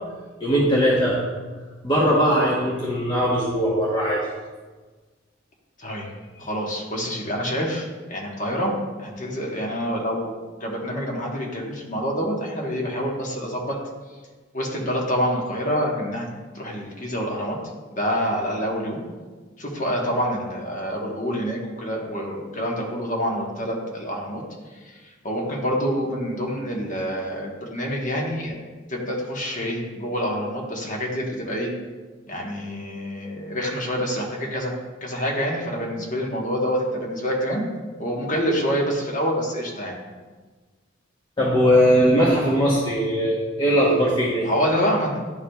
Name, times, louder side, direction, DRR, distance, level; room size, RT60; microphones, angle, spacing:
voice 1, 0.4-1.2 1.8-4.3 41.4-44.5, equal, 20° left, -6 dB, 0.9 m, -20 dB
voice 2, 6.4-8.7 9.0-10.3 10.6-13.8 14.5-16.3 16.5-17.6 17.9-19.0 19.6-24.4 24.7-28.6 28.9-31.7 32.3-34.7 35.0-37.6 38.0-40.0 44.4-45.2, equal, 40° left, -1 dB, 1.2 m, -27 dB
11.5 x 4.7 x 2.3 m, 1.4 s
head